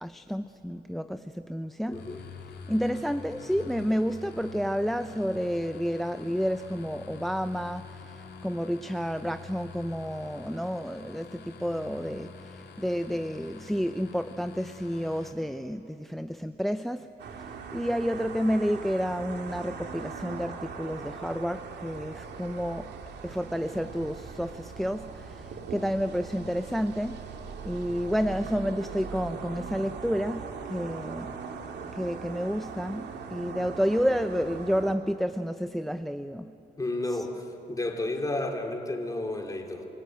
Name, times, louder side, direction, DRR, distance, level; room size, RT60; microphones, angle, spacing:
voice 1, 0.0-2.0 2.7-17.1 17.7-22.9 23.2-27.2 27.6-31.3 31.9-36.5 37.1-37.2, equal, ahead, 10 dB, 0.6 m, -30 dB
sound 1, 1.9-15.3, left 5 dB, 75° left, 3.0 m, -46 dB
voice 2, 1.9-2.2 36.8-39.8, left 2 dB, 20° left, 3 dB, 3.2 m, -32 dB
sound 2, 17.2-35.0, right 5 dB, 75° right, 2.3 m, -40 dB
29.5 x 18.0 x 9.1 m, 2.9 s
cardioid pair, 95°, 18 cm